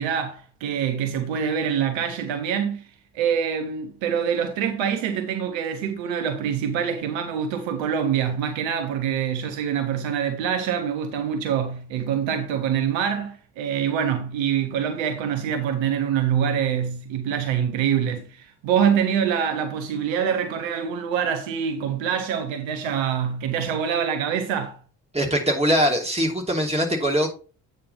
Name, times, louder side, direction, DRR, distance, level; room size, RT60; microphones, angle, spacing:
voice 1, 0.0-2.9 3.1-24.8, right 8 dB, 65° right, 1.1 m, -25 dB
voice 2, 25.1-27.3, equal, 15° right, 2.9 m, -22 dB
8.6 x 3.8 x 5.3 m
figure-of-eight pair, 45°, 49 cm